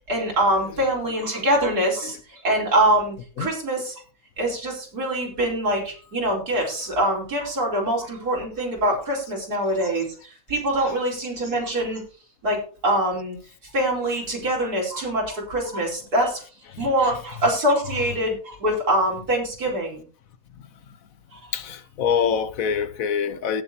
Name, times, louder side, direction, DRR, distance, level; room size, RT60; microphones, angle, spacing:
voice 1, 0.1-4.0 4.4-12.0 12.4-13.4 13.7-16.4 16.8-20.0 21.3-21.4, right 1 dB, 85° right, 4.7 m, -24 dB
voice 2, 21.5-23.6, left 7 dB, 65° left, 1.3 m, -25 dB
18.0 x 7.0 x 2.9 m
omnidirectional pair, 1.6 m